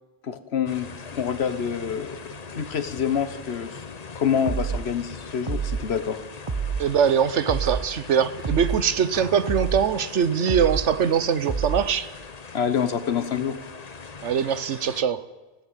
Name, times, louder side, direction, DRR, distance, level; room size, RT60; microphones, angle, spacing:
voice 1, 0.2-3.8 4.1-6.2 12.5-13.6, left 7 dB, 65° left, 1.4 m, -27 dB
sound 1, 0.7-15.0, left 4 dB, 40° left, 1.0 m, -41 dB
sound 2, 4.5-4.9 5.5-5.9 6.5-6.9 7.5-7.9 8.4-8.8 9.5-9.9 10.5-10.9 11.5-11.9, right 5 dB, 30° right, 0.9 m, -27 dB
voice 2, 6.8-12.1 14.2-15.2, right 7 dB, 85° right, 1.2 m, -22 dB
sound 3, 9.1-10.6, left 1 dB, 5° left, 1.3 m, -45 dB
19.5 x 15.0 x 9.1 m
omnidirectional pair, 1.2 m